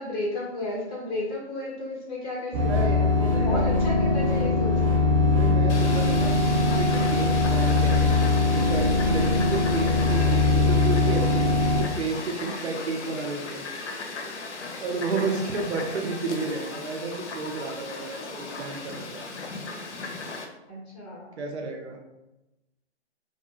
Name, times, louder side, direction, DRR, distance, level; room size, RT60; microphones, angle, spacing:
voice 1, 0.0-5.1 10.0-10.3 15.1-15.7 20.7-21.4, left 1 dB, 35° left, -5 dB, 1.3 m, -34 dB
sound 1, 2.5-11.8, left 3 dB, 30° right, 0.5 m, -21 dB
voice 2, 2.7-3.7 5.3-6.4 6.7-8.0 8.5-13.7 14.8-19.2 21.4-22.0, right 3 dB, 70° right, 2 dB, 0.7 m, -32 dB
Fowl, 5.7-20.5, left 3 dB, 75° left, 0.7 m, -36 dB
2.6 x 2.2 x 3.0 m, 0.98 s
hypercardioid pair, 135°, 35 cm